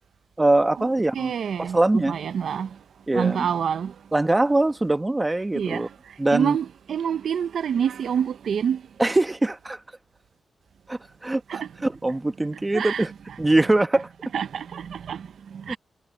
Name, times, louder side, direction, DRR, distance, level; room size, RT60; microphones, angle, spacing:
voice 1, 0.4-1.3 1.6-2.2 3.1-3.5 4.1-5.9 6.2-6.6 9.0-9.8 10.9-13.1 13.4-14.1 15.7-15.8, right 2 dB, 20° right, 1.1 m, -22 dB
voice 2, 1.1-2.8 3.1-4.0 5.5-8.8 11.5-11.7 12.7-13.1 14.3-15.8, right 8 dB, 80° right, 0.5 m, -27 dB
cardioid pair, 70°, 0 cm